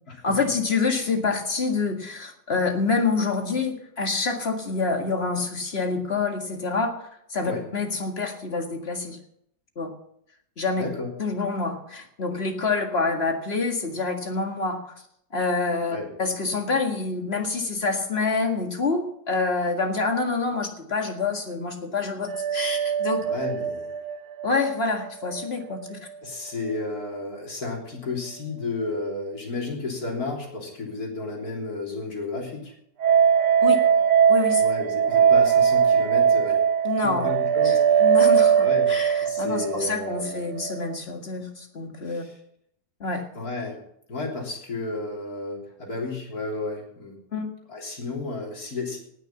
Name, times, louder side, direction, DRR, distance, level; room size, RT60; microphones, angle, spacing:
voice 1, 0.2-7.0 7.3-9.2 9.8-9.9 10.6-10.8 11.2-14.8 15.3-23.2 24.4-26.0 33.6-33.8 34.3-34.6 36.8-37.3 37.6-37.7 38.0-42.2 43.0-43.2 47.3-47.5, left 4 dB, 35° left, 4 dB, 2.0 m, -27 dB
voice 2, 10.7-11.1 15.9-16.1 23.2-24.0 26.2-32.7 34.6-36.6 37.0-38.2 38.5-38.9 39.2-40.6 42.0-42.4 43.3-43.8 44.1-47.2 47.7-49.0, left 3 dB, 60° left, 0 dB, 3.9 m, -32 dB
sound 1, 22.3-25.5 25.7-25.8 33.0-41.0, right 7 dB, 75° right, 1.4 m, -21 dB
18.0 x 6.7 x 6.9 m, 0.71 s
omnidirectional pair, 1.8 m